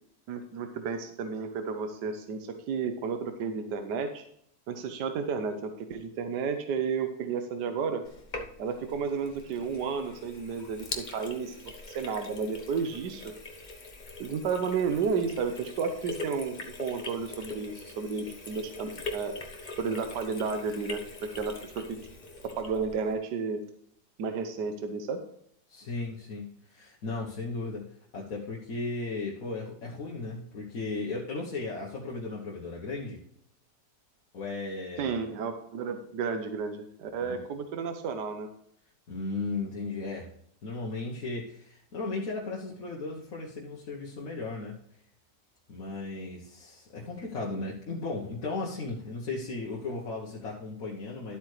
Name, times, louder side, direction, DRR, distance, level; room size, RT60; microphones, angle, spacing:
voice 1, 0.3-4.2 4.7-8.0 8.6-13.2 14.2-19.3 19.8-21.0 21.3-21.8 22.6-23.6 24.2-25.2 35.0-38.5, right 5 dB, 75° right, 6 dB, 1.4 m, -32 dB
Sink (filling or washing), 8.0-23.1, left 3 dB, 30° left, 1.0 m, -43 dB
voice 2, 25.7-27.9 28.1-33.2 34.3-35.3 37.2-37.4 39.1-40.3 40.6-44.8 45.7-51.4, left 3 dB, 55° left, -3 dB, 1.6 m, -36 dB
12.0 x 8.0 x 3.3 m, 0.69 s
omnidirectional pair, 1.9 m